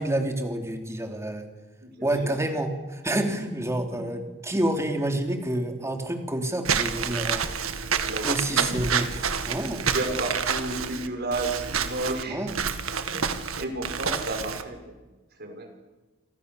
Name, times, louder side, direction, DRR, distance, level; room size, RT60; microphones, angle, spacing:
voice 1, 0.0-1.5 2.0-7.5 8.2-9.1 9.4-9.9 12.3-12.6, right 1 dB, 15° right, 4 dB, 3.4 m, -28 dB
voice 2, 1.8-2.3 3.4-3.6 3.9-4.0 8.0-9.6 9.9-12.4 13.1-15.0 15.4-15.7, right 2 dB, 50° right, 5 dB, 5.5 m, -33 dB
Walk footsteps / Squeak, 6.6-14.6, right 6 dB, 80° right, 1.9 m, -28 dB
29.0 x 25.5 x 7.0 m, 1.2 s
head